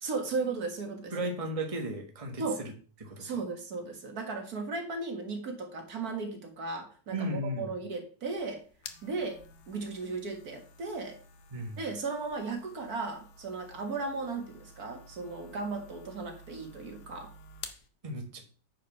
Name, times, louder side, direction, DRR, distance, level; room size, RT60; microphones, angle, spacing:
voice 1, 0.0-1.3 2.4-2.6 3.2-8.6 9.0-9.4 9.7-11.2 11.8-17.3, right 3 dB, 70° right, 4 dB, 2.1 m, -36 dB
voice 2, 1.1-2.7 3.0-3.4 7.1-7.7 11.5-11.8 18.0-18.4, right 1 dB, 25° right, 3 dB, 1.3 m, -35 dB
sound 1, 8.3-17.9, left 3 dB, 85° left, 1.5 m, -51 dB
9.2 x 4.8 x 5.7 m, 0.39 s
omnidirectional pair, 1.7 m